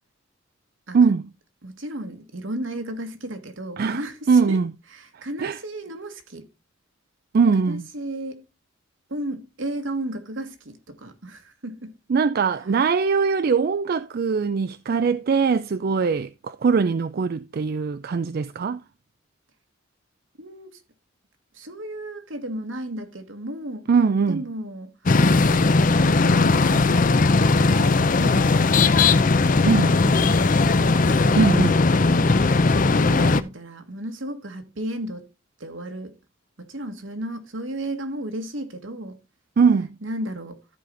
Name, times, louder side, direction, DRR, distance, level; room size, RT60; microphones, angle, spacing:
voice 1, 0.9-1.3 3.8-4.0 4.3-4.7 5.1-5.6 7.3-7.8 12.1-18.8 23.9-24.4 29.6-30.0 31.4-31.8 39.6-39.9, right 5 dB, 50° right, 0.4 m, -21 dB
voice 2, 1.6-4.6 4.9-6.5 7.6-8.4 9.1-11.9 12.6-12.7 20.4-20.8 21.5-23.9 24.3-25.7 26.0-28.8 29.8-30.6 31.5-32.4 32.7-35.3 35.6-36.1 36.6-39.2 40.0-40.6, right 1 dB, 70° right, 1.7 m, -34 dB
sound 1, 25.1-33.4, left 3 dB, 40° left, 0.6 m, -18 dB
13.5 x 5.0 x 3.8 m
head